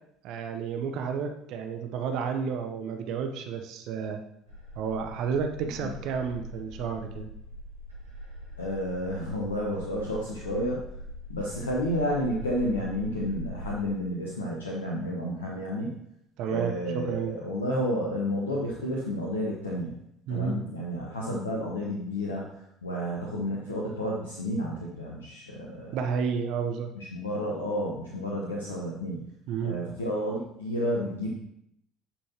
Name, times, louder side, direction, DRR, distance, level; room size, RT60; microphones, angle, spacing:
voice 1, 0.2-4.2 4.8-7.3 16.4-17.4 20.3-20.6 25.9-26.9 29.5-29.8, right 6 dB, 60° right, 6 dB, 0.7 m, -31 dB
sound 1, 4.5-13.8, left 1 dB, 85° right, 2.6 m, -42 dB
voice 2, 8.6-10.8 11.3-15.9 16.5-20.0 20.3-22.5 22.8-26.0 26.9-29.3 29.6-31.3, equal, 85° left, -3 dB, 0.9 m, -31 dB
9.8 x 5.5 x 2.9 m, 0.77 s
figure-of-eight pair, 60°, 0 cm